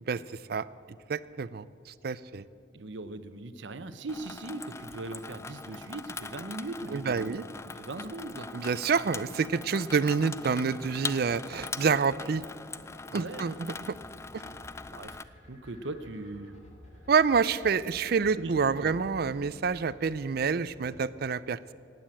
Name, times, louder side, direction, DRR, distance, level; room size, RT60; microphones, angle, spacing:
voice 1, 1.1-1.7 2.0-2.4 6.9-7.4 8.5-12.4 13.1-13.7 17.1-21.7, right 5 dB, 55° right, 17 dB, 0.4 m, -27 dB
voice 2, 2.7-8.5 13.1-13.5 14.4-16.5 18.4-18.9, right 2 dB, 70° right, 11 dB, 0.8 m, -40 dB
Water tap faucet / Sink (filling or washing), 4.1-15.2, left 4 dB, 15° left, 0.3 m, -42 dB
sound 1, 13.1-21.1, left 1 dB, 40° left, 2.8 m, -52 dB
16.5 x 9.3 x 8.6 m, 2.6 s
head